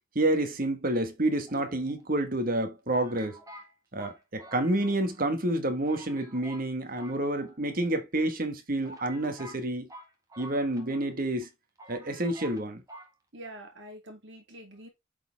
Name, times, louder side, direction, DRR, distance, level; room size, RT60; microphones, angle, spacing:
voice 1, 0.1-3.4 3.9-9.9 10.4-11.5 11.9-12.8, right 1 dB, 45° right, 1.4 m, -29 dB
sound 1, 1.5-2.2 2.9-5.2 5.5-5.6 5.9-6.7 7.0-7.9 8.5-8.6 8.8-11.1 11.4-11.5 11.8-12.6 12.9-13.1, right 1 dB, 20° right, 1.5 m, -48 dB
voice 2, 13.3-14.9, right 1 dB, 70° right, 2.5 m, -45 dB
8.0 x 4.3 x 3.3 m
head